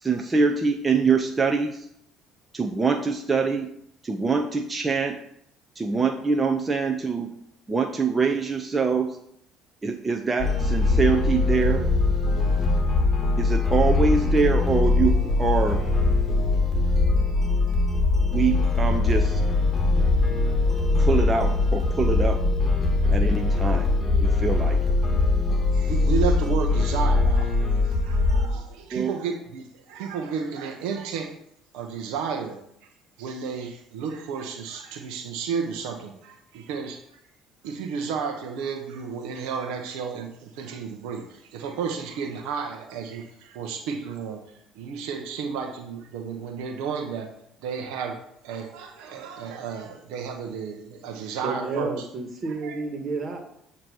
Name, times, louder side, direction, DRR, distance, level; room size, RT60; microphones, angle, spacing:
voice 1, 0.0-1.9 2.5-3.7 4.0-5.2 5.8-7.3 7.7-9.2 9.8-11.9 13.4-15.8 18.3-19.4 21.0-22.4 23.1-23.9 24.2-24.8 28.9-29.1, right 4 dB, 25° right, 3 dB, 0.6 m, -24 dB
sound 1, 10.4-28.5, left 3 dB, 30° left, 1.5 m, -22 dB
voice 2, 25.7-27.5 28.0-31.3 31.7-32.6 33.2-37.0 37.6-44.4 44.8-47.3 47.6-48.2 48.4-51.9 52.5-52.8, right 6 dB, 75° right, 3 dB, 0.8 m, -32 dB
voice 3, 51.4-53.4, right 3 dB, 45° right, 4 dB, 1.6 m, -30 dB
8.0 x 2.9 x 6.1 m, 0.74 s
supercardioid pair, 75°, 0 cm